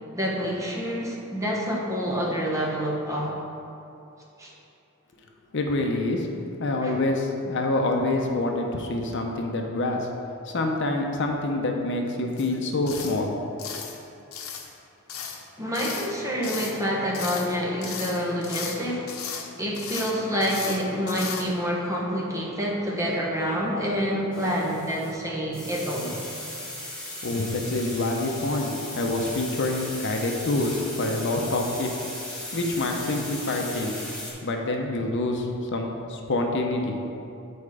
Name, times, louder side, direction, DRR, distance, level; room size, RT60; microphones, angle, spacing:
voice 1, 0.1-3.4 4.4-4.5 6.8-6.9 15.6-19.2 19.6-26.1, equal, 15° right, -3 dB, 1.1 m, -27 dB
voice 2, 5.5-6.3 6.6-10.1 10.4-13.8 27.2-31.9 32.5-34.1 34.4-37.0, left 2 dB, 60° left, 2 dB, 0.7 m, -26 dB
sound 1, 12.4-12.5 12.9-13.2 13.6-14.0 14.3-14.7 15.1-15.4 15.7-16.1 16.4-16.8 17.1-17.5 17.8-18.8 19.1-19.5 19.7-20.1 20.4-20.8 21.1-21.4, left 7 dB, 90° left, 0.8 m, -35 dB
sound 2, 24.3-25.1 25.5-34.3, left 1 dB, 5° left, 1.4 m, -37 dB
8.8 x 4.3 x 4.9 m, 2.7 s
head